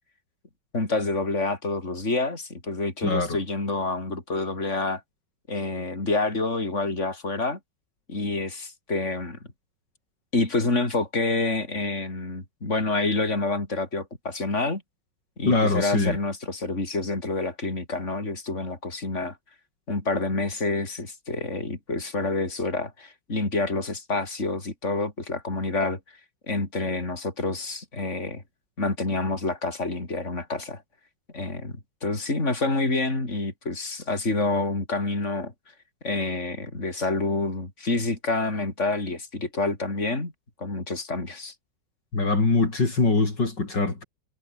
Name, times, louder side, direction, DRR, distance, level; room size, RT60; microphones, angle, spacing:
voice 1, 0.7-5.0 5.5-7.6 8.1-9.4 10.3-14.8 15.4-19.4 19.9-26.0 26.5-28.4 28.8-30.8 31.3-31.7 32.0-35.5 36.0-40.3 40.6-41.5, left 2 dB, 35° left, 5.4 m, -28 dB
voice 2, 3.0-3.4 15.5-16.2 42.1-44.0, left 3 dB, 65° left, 5.4 m, -23 dB
omnidirectional pair, 2.1 m